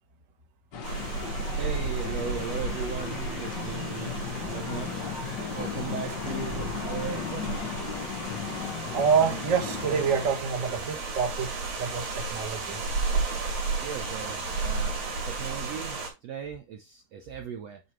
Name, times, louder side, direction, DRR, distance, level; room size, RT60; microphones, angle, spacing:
sound 1, 0.7-10.3, left 6 dB, 70° left, 1.0 m, -35 dB
sound 2, 0.8-16.1, right 4 dB, 85° right, 4.9 m, -33 dB
voice 1, 1.6-4.9 5.5-7.7 13.8-15.0 15.2-17.8, right 7 dB, 70° right, 1.7 m, -38 dB
voice 2, 8.4-12.8, right 6 dB, 40° right, 1.1 m, -27 dB
9.3 x 4.6 x 3.3 m
omnidirectional pair, 4.0 m